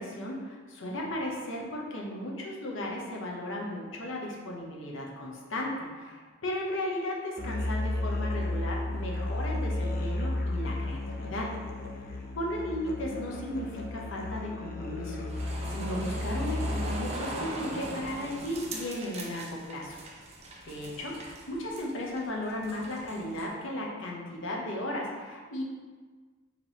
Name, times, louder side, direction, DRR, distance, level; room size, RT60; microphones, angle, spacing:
voice 1, 0.0-11.5 12.4-20.0 20.6-25.6, left 1 dB, 75° left, -1 dB, 0.8 m, -35 dB
Musical instrument, 7.4-17.2, left 2 dB, 50° left, 0.6 m, -33 dB
sound 1, 15.3-23.5, right 1 dB, 35° right, 0.5 m, -40 dB
4.9 x 3.0 x 3.4 m, 1.5 s
head